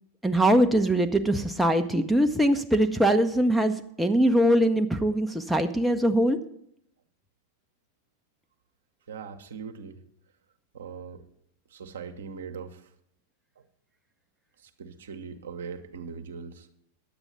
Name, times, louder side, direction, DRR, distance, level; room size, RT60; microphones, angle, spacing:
voice 1, 0.2-6.4, right 1 dB, 5° right, 5 dB, 0.7 m, -22 dB
voice 2, 9.1-10.0 10.7-11.2 11.7-12.9 14.6-16.7, right 6 dB, 65° right, 7 dB, 0.9 m, -40 dB
10.5 x 8.0 x 5.7 m, 0.72 s
figure-of-eight pair, 90°, 0 cm